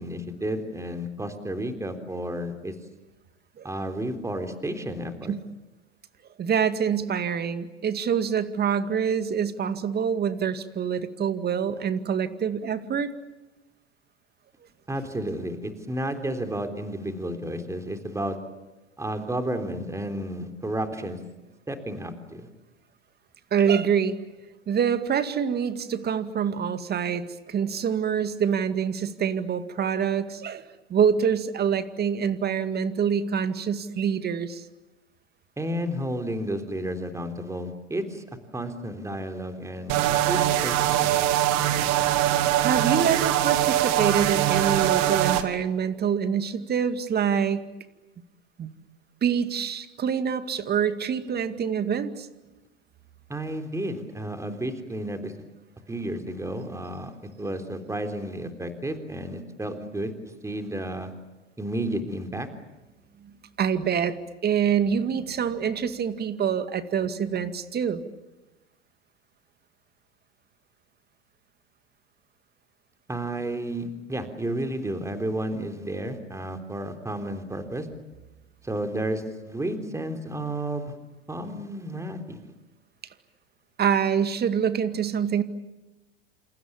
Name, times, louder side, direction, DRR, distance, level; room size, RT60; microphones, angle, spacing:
voice 1, 0.0-2.7 3.6-5.4 14.9-18.4 19.0-21.2 21.7-22.5 35.6-38.3 38.5-41.1 53.3-55.3 55.9-57.1 57.4-60.1 60.4-61.1 61.6-62.5 73.1-77.9 78.6-81.0 81.3-82.5, right 1 dB, 10° right, 6 dB, 3.7 m, -32 dB
voice 2, 6.4-13.1 23.5-24.2 24.7-34.6 42.6-47.7 48.6-48.7 49.2-52.3 63.2-63.3 63.6-68.0 83.8-85.4, right 7 dB, 25° right, 10 dB, 2.2 m, -26 dB
sound 1, 39.9-45.4, right 13 dB, 50° right, 2.5 m, -22 dB
28.5 x 28.5 x 7.3 m, 1.1 s
hypercardioid pair, 90°, 36 cm